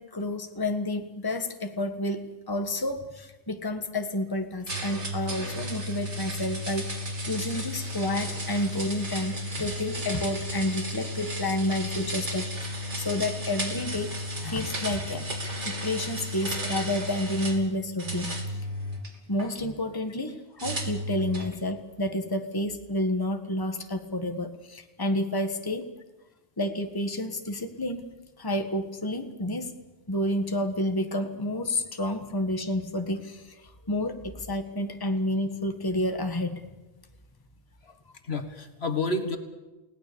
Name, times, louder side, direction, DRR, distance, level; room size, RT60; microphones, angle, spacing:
voice 1, 0.0-15.3 15.6-18.3 19.3-25.9 26.6-29.7 30.1-33.6 33.9-36.6, left 1 dB, 20° left, 6 dB, 1.5 m, -30 dB
sound 1, 4.7-17.6 18.0-19.5 20.6-21.5, equal, 85° right, 3.5 m, -33 dB
voice 2, 37.8-39.4, left 2 dB, 65° left, 7 dB, 2.0 m, -30 dB
29.5 x 18.5 x 6.9 m, 1.1 s
omnidirectional pair, 1.2 m